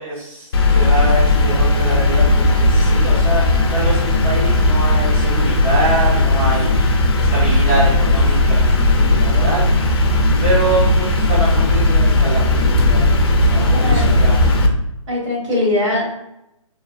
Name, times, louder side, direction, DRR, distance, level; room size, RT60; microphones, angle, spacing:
voice 1, 0.0-9.7 10.4-13.0 13.4-14.4, right 1 dB, 25° right, -8 dB, 0.7 m, -24 dB
sound 1, 0.5-14.7, left 2 dB, 45° left, 0.4 m, -15 dB
voice 2, 13.7-14.3 15.1-16.0, left 1 dB, 60° right, -3 dB, 1.4 m, -21 dB
3.1 x 2.5 x 2.3 m, 0.82 s
hypercardioid pair, 165°, 17 cm